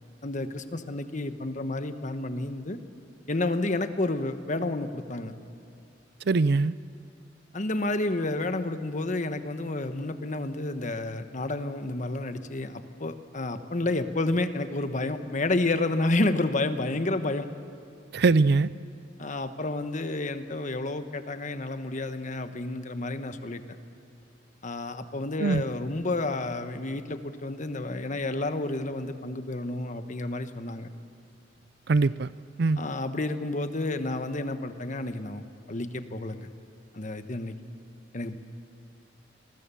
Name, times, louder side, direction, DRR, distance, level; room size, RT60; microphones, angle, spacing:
voice 1, 0.2-2.8 3.3-5.3 7.5-17.5 19.2-23.6 24.6-30.9 32.8-36.5 36.9-37.6 38.1-38.4, left 2 dB, 45° left, 9 dB, 1.2 m, -30 dB
voice 2, 6.3-6.7 18.1-18.7 25.4-25.6 31.9-32.3 32.6-32.8, right 3 dB, 60° right, 17 dB, 0.5 m, -22 dB
29.0 x 21.0 x 7.0 m, 2.6 s
head